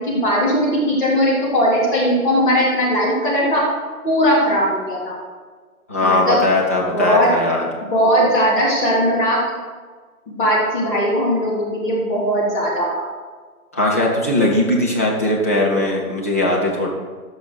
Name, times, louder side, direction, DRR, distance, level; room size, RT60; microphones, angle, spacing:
voice 1, 0.0-3.7 4.0-5.1 6.0-6.4 6.9-7.3 7.9-9.4 10.3-13.0, equal, 30° left, -7 dB, 3.6 m, -18 dB
voice 2, 5.9-7.7 13.7-16.9, left 1 dB, 10° left, -3 dB, 0.6 m, -19 dB
15.0 x 6.2 x 5.0 m, 1.5 s
figure-of-eight pair, 135°, 45 cm